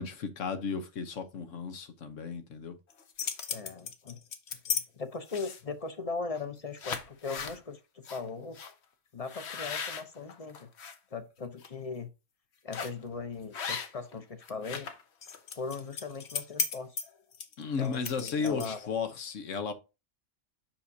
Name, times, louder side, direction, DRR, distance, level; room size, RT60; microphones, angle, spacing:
voice 1, 0.0-2.8 17.6-19.7, left 5 dB, 80° left, 1.4 m, -34 dB
sound 1, 2.9-4.8 5.3-5.7 6.3-6.5 6.8-7.6 8.0-8.2 8.5-8.7 9.3-10.9 11.4-11.7 12.7-13.0 13.5-14.1 14.4-18.9, left 6 dB, 60° left, 1.2 m, -36 dB
voice 2, 3.5-4.2 4.7-7.8 8.1-8.6 9.1-10.7 11.1-12.1 12.6-14.9 15.5-17.0 17.8-18.9, left 4 dB, 35° left, 0.8 m, -39 dB
7.4 x 5.8 x 2.8 m
omnidirectional pair, 1.3 m